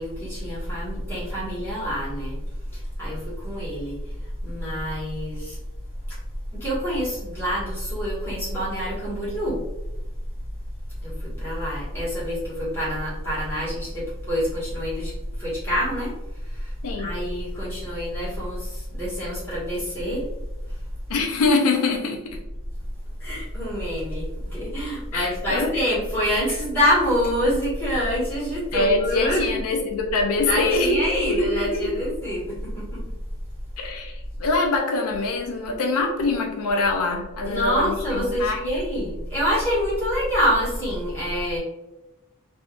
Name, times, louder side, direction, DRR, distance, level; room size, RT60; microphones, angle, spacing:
voice 1, 0.0-2.4 2.7-4.0 4.4-5.6 6.1-6.2 6.6-9.6 11.0-16.1 16.4-20.3 23.2-29.5 30.4-33.0 37.4-41.6, equal, 10° left, -9 dB, 1.5 m, -26 dB
voice 2, 21.1-22.4 25.1-25.8 28.7-31.9 33.8-38.6, left 3 dB, 85° left, 2 dB, 0.5 m, -24 dB
3.4 x 2.6 x 2.4 m, 0.97 s
head